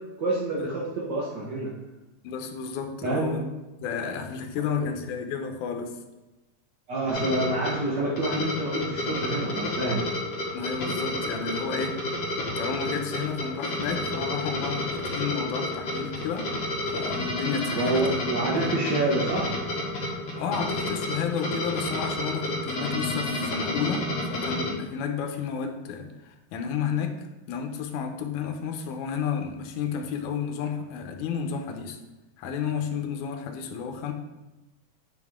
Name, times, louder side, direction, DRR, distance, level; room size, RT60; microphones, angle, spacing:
voice 1, 0.2-1.7 3.0-3.3 4.8-4.9 6.9-10.0 17.8-19.5, right 2 dB, 50° right, -5 dB, 1.2 m, -27 dB
voice 2, 2.2-3.5 3.8-6.0 10.5-12.0 12.6-16.5 16.9-18.1 18.5-18.8 20.4-32.0 32.4-34.1, left 6 dB, 80° left, 5 dB, 2.2 m, -32 dB
sound 1, 7.1-24.7, left 1 dB, 60° left, 2.4 m, -31 dB
9.4 x 5.3 x 3.6 m, 1.1 s
omnidirectional pair, 3.5 m